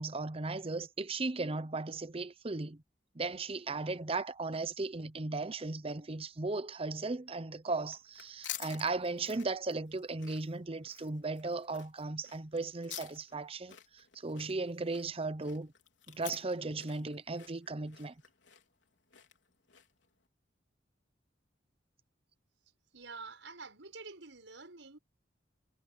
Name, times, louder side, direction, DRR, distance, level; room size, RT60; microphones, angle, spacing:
voice 1, 0.0-2.8 3.1-15.7 16.1-18.1, right 3 dB, 30° right, 0.8 m, -36 dB
sound 1, 7.8-20.1, left 12 dB, 75° left, 4.2 m, -49 dB
voice 2, 22.9-25.0, right 4 dB, 90° right, 6.3 m, -48 dB
head